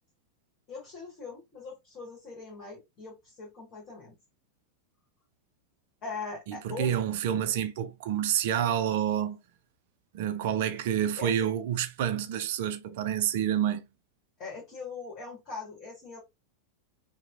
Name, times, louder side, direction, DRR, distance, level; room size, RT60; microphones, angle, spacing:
voice 1, 0.7-4.2 6.0-6.9 11.2-11.5 14.4-16.2, left 4 dB, 35° left, 1.3 m, -41 dB
voice 2, 6.5-9.4 10.1-13.8, right 10 dB, 50° right, 0.3 m, -28 dB
2.9 x 2.0 x 2.4 m
figure-of-eight pair, 90°, 0 cm